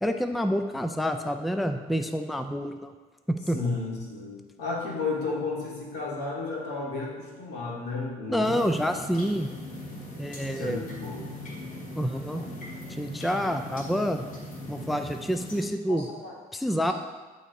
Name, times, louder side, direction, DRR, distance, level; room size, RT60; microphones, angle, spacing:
voice 1, 0.0-2.9 3.3-3.6 8.3-9.5 10.2-10.8 12.0-12.4 13.0-14.3 14.7-16.1 16.5-16.9, equal, ahead, 7 dB, 0.4 m, -28 dB
voice 2, 3.5-8.7 10.5-11.3 15.9-16.4, left 3 dB, 80° left, -4 dB, 2.3 m, -33 dB
sound 1, 8.4-15.6, left 1 dB, 55° left, 2.3 m, -40 dB
10.5 x 4.1 x 4.8 m, 1.3 s
cardioid pair, 110°, 17 cm